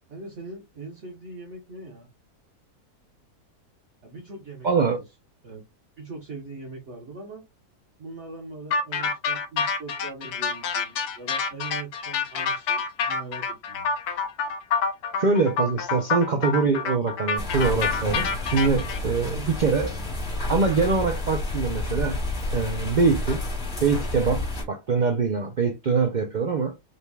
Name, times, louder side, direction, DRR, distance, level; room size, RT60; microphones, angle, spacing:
voice 1, 0.1-2.1 4.0-4.9 5.4-5.6 6.0-7.4 8.0-13.9 19.3-19.5, right 3 dB, 50° right, 1.5 m, -41 dB
voice 2, 4.6-5.0 15.2-19.9 20.5-22.2 22.5-23.4 23.8-26.8, right 4 dB, 70° right, 0.4 m, -23 dB
sound 1, 8.7-19.0, left 5 dB, 80° left, 1.3 m, -27 dB
sound 2, 17.4-24.6, left 2 dB, 40° left, 2.1 m, -30 dB
5.2 x 3.3 x 2.3 m
omnidirectional pair, 1.6 m